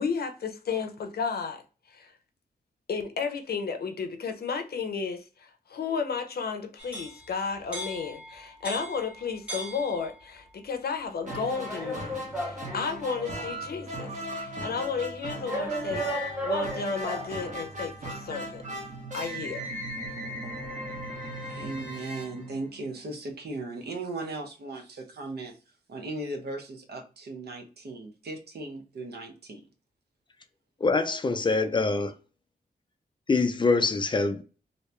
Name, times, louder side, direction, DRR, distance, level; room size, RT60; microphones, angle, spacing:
voice 1, 0.0-1.6 1.9-2.1 2.9-18.6 19.1-19.7, left 5 dB, 70° left, 0.6 m, -33 dB
sound 1, 6.8-10.4 11.3-13.6 14.3-14.4 15.5-17.4, right 1 dB, 5° right, 1.1 m, -36 dB
sound 2, 11.2-23.1, equal, 50° right, 1.1 m, -37 dB
voice 2, 21.5-25.6 25.9-29.6, right 2 dB, 75° right, 0.9 m, -37 dB
voice 3, 30.8-32.1 33.3-34.4, left 3 dB, 30° left, 0.4 m, -24 dB
3.0 x 2.7 x 3.2 m
wide cardioid pair, 165°, 17 cm